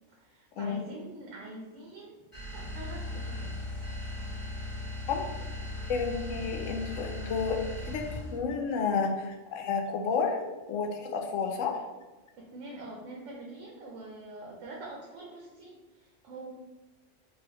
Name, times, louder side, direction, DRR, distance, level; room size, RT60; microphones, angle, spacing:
voice 1, 0.1-2.2 2.5-3.8 12.4-16.5, right 2 dB, 85° right, -1 dB, 1.0 m, -45 dB
sound 1, 2.3-8.5, left 2 dB, 40° left, 1.8 m, -38 dB
voice 2, 5.9-10.4 10.7-11.8, left 5 dB, 90° left, 3 dB, 1.0 m, -31 dB
4.1 x 2.5 x 2.8 m, 1.2 s
omnidirectional pair, 1.3 m